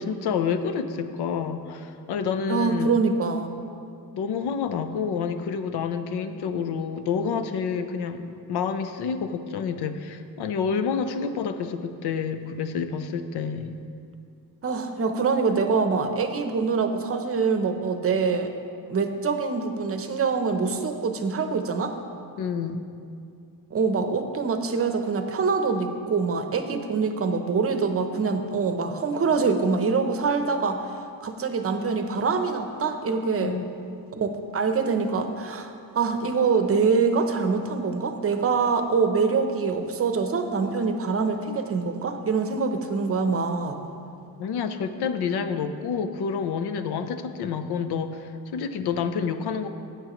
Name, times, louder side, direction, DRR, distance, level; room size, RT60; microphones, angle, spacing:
voice 1, 0.0-2.9 4.1-13.8 22.4-22.8 33.4-33.7 44.4-49.7, left 6 dB, 85° left, 9 dB, 0.7 m, -28 dB
voice 2, 2.5-3.6 14.6-18.5 18.9-22.0 23.7-30.8 31.2-33.6 34.2-43.8, right 4 dB, 35° right, 7 dB, 0.7 m, -25 dB
14.5 x 8.1 x 3.0 m, 2.4 s
wide cardioid pair, 150°, 38 cm